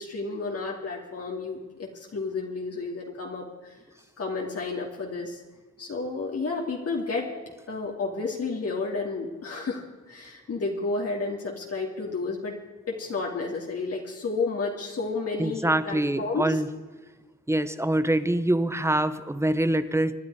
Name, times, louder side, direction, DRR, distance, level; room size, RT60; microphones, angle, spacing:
voice 1, 0.0-3.8 4.2-5.4 5.8-7.3 7.7-12.6 12.9-16.6, left 3 dB, 55° left, -1 dB, 2.5 m, -31 dB
voice 2, 15.4-16.6 17.5-20.2, right 1 dB, 10° right, 13 dB, 1.0 m, -25 dB
26.0 x 10.5 x 4.9 m, 1.3 s
cardioid pair, 75°, 29 cm